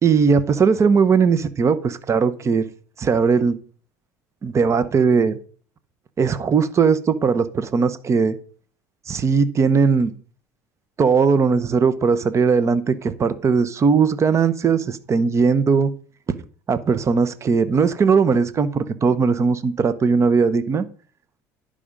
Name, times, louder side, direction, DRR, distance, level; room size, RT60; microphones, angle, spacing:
voice 1, 0.0-2.6 3.0-3.6 4.4-5.4 6.2-8.4 9.1-10.1 11.0-15.9 16.7-20.9, right 5 dB, 35° right, 14 dB, 1.0 m, -19 dB
11.0 x 5.1 x 5.3 m, 0.43 s
hypercardioid pair, 80°, 9 cm